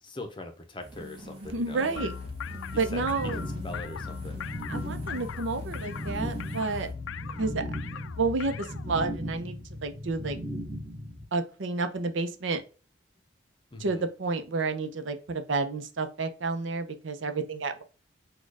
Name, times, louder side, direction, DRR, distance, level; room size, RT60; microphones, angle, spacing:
voice 1, 0.0-2.1 2.9-3.1 3.3-4.4 13.7-14.1, left 2 dB, 25° left, 6 dB, 0.6 m, -42 dB
sound 1, 0.8-6.9, right 1 dB, 30° right, 1.3 m, -46 dB
voice 2, 1.4-2.1 2.7-3.4 4.7-6.9 7.4-7.6 8.2-10.4 11.3-12.6 13.8-17.8, right 3 dB, 80° right, 8 dB, 0.6 m, -30 dB
sound 2, 2.0-9.1, left 6 dB, 85° left, 0.3 m, -39 dB
sound 3, 2.7-11.2, equal, 10° right, 0.8 m, -38 dB
4.3 x 2.3 x 4.6 m, 0.36 s
head